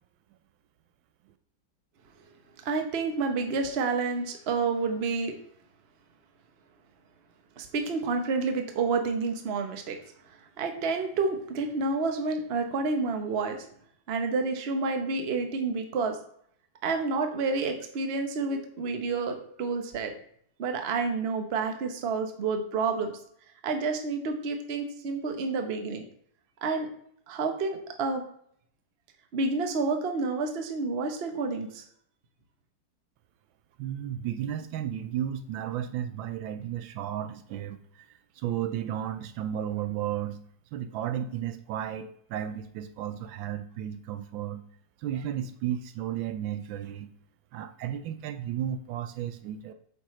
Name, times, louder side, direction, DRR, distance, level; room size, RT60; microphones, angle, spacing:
voice 1, 2.6-5.3 7.6-10.0 10.6-13.6 14.1-16.2 16.8-20.1 20.6-23.1 23.6-26.0 26.6-26.9 27.3-28.2 29.3-31.8, right 4 dB, 45° right, 4 dB, 0.8 m, -29 dB
voice 2, 33.8-38.1 38.4-40.4 40.7-44.6 45.0-47.1 47.5-49.7, right 10 dB, 80° right, 10 dB, 1.3 m, -33 dB
8.5 x 5.6 x 3.1 m, 0.64 s
omnidirectional pair, 2.2 m